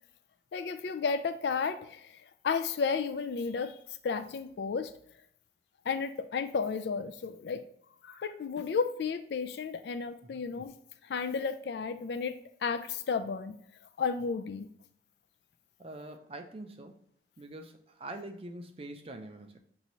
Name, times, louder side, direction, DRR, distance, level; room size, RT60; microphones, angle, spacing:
voice 1, 0.5-3.8 4.0-4.9 5.9-7.6 8.0-10.7 11.0-13.6 14.0-14.7, left 5 dB, 70° left, 11 dB, 0.3 m, -33 dB
voice 2, 15.8-17.0 17.4-19.6, right 1 dB, 30° right, 6 dB, 0.4 m, -44 dB
5.5 x 2.7 x 3.0 m, 0.67 s
head